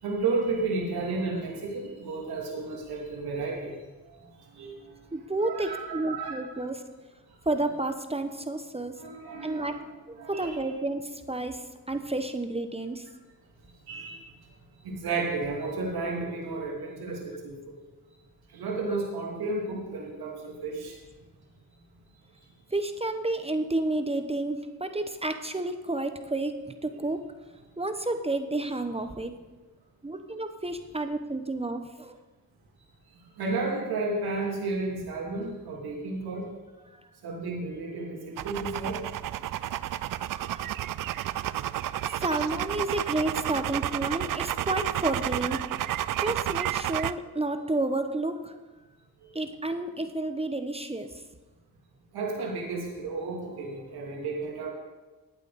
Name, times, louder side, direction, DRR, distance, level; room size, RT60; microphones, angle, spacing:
voice 1, 0.0-3.7 4.5-4.7 5.4-6.4 9.0-9.8 10.2-10.6 13.9-14.2 14.8-17.8 18.5-21.0 33.4-36.5 37.2-39.0 49.2-49.3 52.1-54.7, right 3 dB, 85° right, -1 dB, 3.1 m, -32 dB
voice 2, 5.1-6.8 7.5-9.0 9.4-9.7 10.1-13.1 18.9-19.0 22.7-26.5 26.8-27.2 27.8-29.3 30.0-32.2 36.9-37.0 40.0-40.7 42.0-45.7 46.2-48.6 49.3-51.1, right 2 dB, 15° right, 8 dB, 1.0 m, -31 dB
sound 1, 38.4-47.1, right 12 dB, 60° right, 0.5 m, -31 dB
15.0 x 9.1 x 4.1 m, 1.2 s
cardioid pair, 75°, 37 cm